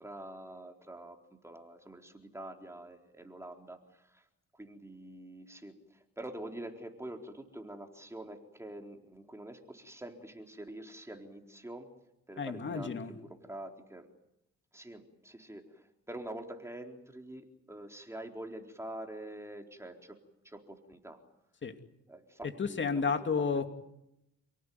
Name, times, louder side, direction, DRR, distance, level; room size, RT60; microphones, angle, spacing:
voice 1, 0.0-4.2 4.6-11.9 12.3-14.1 14.7-20.2 20.4-21.2 22.1-23.1 23.5-23.6, right 1 dB, 10° right, 3 dB, 4.0 m, -46 dB
voice 2, 12.4-13.1 21.6-21.7 22.6-23.7, left 5 dB, 40° left, 7 dB, 2.6 m, -31 dB
29.0 x 18.0 x 9.5 m, 0.84 s
cardioid pair, 90°, 30 cm